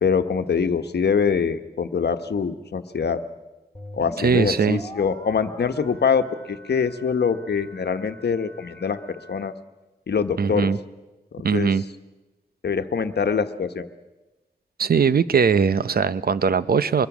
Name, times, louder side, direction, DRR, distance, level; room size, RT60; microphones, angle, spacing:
voice 1, 0.0-3.2 3.9-9.0 9.3-9.5 10.1-10.7 11.3-11.7 12.6-13.9, left 6 dB, 80° left, 9 dB, 1.2 m, -24 dB
sound 1, 3.7-9.5, left 1 dB, 10° left, 3.4 m, -43 dB
voice 2, 4.2-4.8 10.4-10.8 11.4-11.8 14.8-17.1, right 6 dB, 65° right, 15 dB, 0.7 m, -20 dB
25.0 x 21.5 x 6.2 m, 1.1 s
wide cardioid pair, 85°, 17 cm